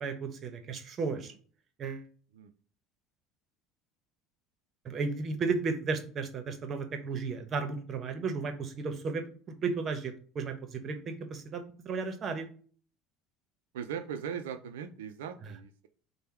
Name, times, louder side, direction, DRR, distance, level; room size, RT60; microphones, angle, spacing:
voice 1, 0.0-1.3 1.8-2.1 4.8-9.2 9.6-12.5, right 4 dB, 45° right, 7 dB, 0.9 m, -34 dB
voice 2, 13.7-15.9, right 7 dB, 80° right, 10 dB, 0.4 m, -39 dB
3.4 x 2.2 x 4.3 m, 0.44 s
hypercardioid pair, 75°, 0 cm